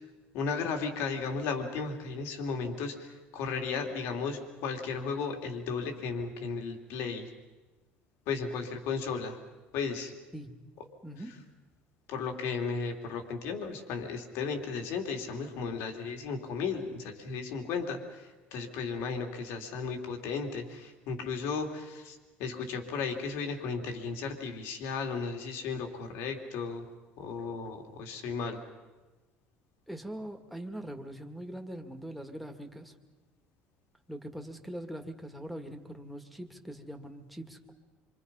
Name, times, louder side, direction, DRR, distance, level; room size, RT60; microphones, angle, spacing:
voice 1, 0.3-7.3 8.3-9.4 9.7-10.1 12.1-26.9 27.2-28.6, left 5 dB, 75° left, 4 dB, 3.1 m, -35 dB
voice 2, 11.0-11.4 29.9-32.9 34.1-37.7, right 1 dB, ahead, 7 dB, 2.0 m, -42 dB
27.0 x 25.5 x 5.6 m, 1.2 s
cardioid pair, 135°, 4 cm